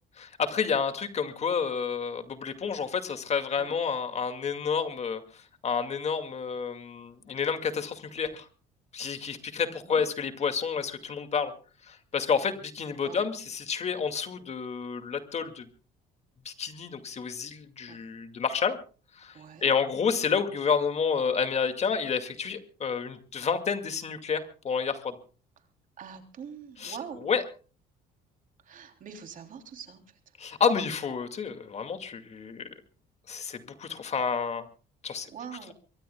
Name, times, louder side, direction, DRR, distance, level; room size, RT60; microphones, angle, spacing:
voice 1, 0.2-8.5 8.9-11.5 11.8-15.7 16.4-18.8 19.2-25.2 26.8-27.0 27.2-27.4 30.4-32.7 33.3-34.7 35.0-35.3, left 6 dB, 40° left, 8 dB, 2.3 m, -30 dB
voice 2, 19.3-19.7 26.0-27.3 28.6-30.0 35.3-35.7, right 7 dB, 50° right, 6 dB, 3.3 m, -43 dB
23.0 x 23.0 x 2.3 m, 0.37 s
cardioid pair, 110°, 17 cm